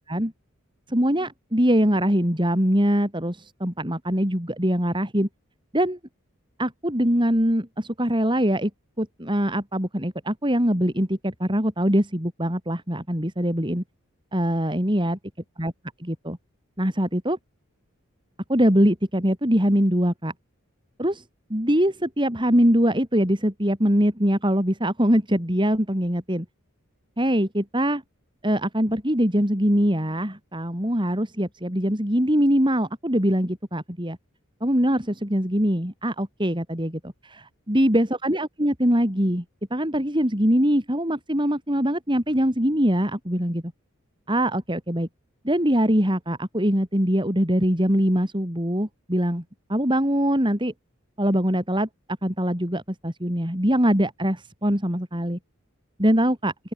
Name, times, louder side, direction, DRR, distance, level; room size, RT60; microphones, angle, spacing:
voice 1, 0.9-5.3 5.7-6.0 6.6-8.7 9.0-13.8 14.3-15.2 15.6-15.7 16.0-16.4 16.8-17.4 18.5-20.3 21.0-21.2 21.5-26.5 27.2-28.0 28.4-34.2 34.6-39.4 39.7-43.6 44.3-45.1 45.4-49.4 49.7-50.7 51.2-51.9 52.2-55.4 56.0-56.5, equal, 20° right, 5.0 m, -23 dB
open air
head